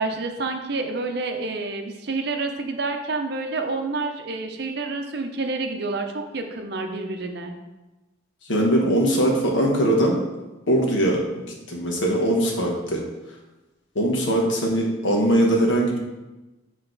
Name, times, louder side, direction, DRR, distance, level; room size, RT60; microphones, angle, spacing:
voice 1, 0.0-7.5, right 3 dB, 55° right, 4 dB, 0.6 m, -28 dB
voice 2, 8.5-10.2 10.7-11.2 11.5-13.0 13.9-16.0, right 1 dB, 70° left, -1 dB, 1.2 m, -21 dB
7.9 x 3.2 x 3.9 m, 1.1 s
head